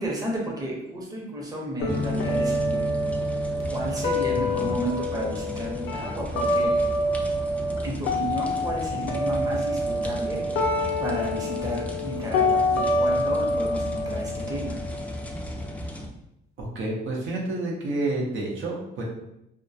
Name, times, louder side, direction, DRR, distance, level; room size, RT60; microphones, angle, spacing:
voice 1, 0.0-2.9 3.7-6.8 7.8-10.4 11.0-14.8, right 1 dB, 20° right, -3 dB, 0.7 m, -32 dB
sound 1, 1.8-7.8 8.0-15.8, left 1 dB, 85° left, 0.5 m, -27 dB
sound 2, 1.9-16.1, left 1 dB, 5° left, 0.3 m, -36 dB
sound 3, 1.9-9.5, left 2 dB, 45° right, 0.9 m, -37 dB
voice 2, 4.3-4.7 16.6-19.0, right 2 dB, 80° right, -2 dB, 0.7 m, -29 dB
2.2 x 2.1 x 2.6 m, 0.81 s
cardioid pair, 90°, 20 cm